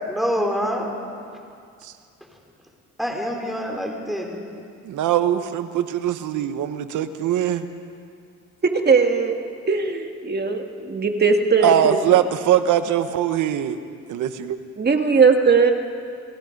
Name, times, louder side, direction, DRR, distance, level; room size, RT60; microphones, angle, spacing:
voice 1, 0.1-0.9 3.0-4.4, equal, ahead, 0 dB, 4.7 m, -26 dB
voice 2, 4.8-7.6 11.6-13.8 14.1-14.6, right 10 dB, 80° right, 10 dB, 1.2 m, -21 dB
voice 3, 8.9-9.4 9.7-12.0 14.8-15.7, right 5 dB, 35° right, 4 dB, 2.1 m, -19 dB
29.5 x 18.0 x 5.4 m, 2.3 s
cardioid pair, 90°, 30 cm